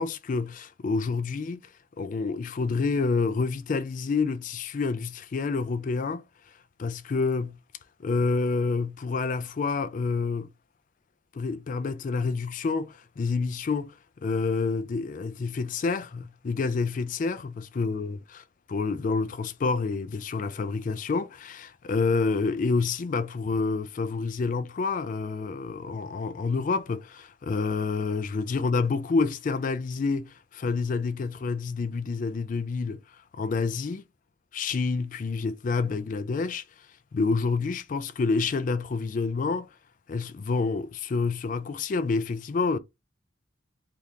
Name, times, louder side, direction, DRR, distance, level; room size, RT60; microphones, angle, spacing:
voice 1, 0.0-1.6 2.0-6.2 6.8-7.6 8.0-10.5 11.3-13.9 14.2-18.2 18.7-33.0 33.3-34.0 34.5-36.6 37.1-39.7 40.1-42.8, left 4 dB, 40° left, 0.3 m, -28 dB
2.8 x 2.4 x 3.4 m
head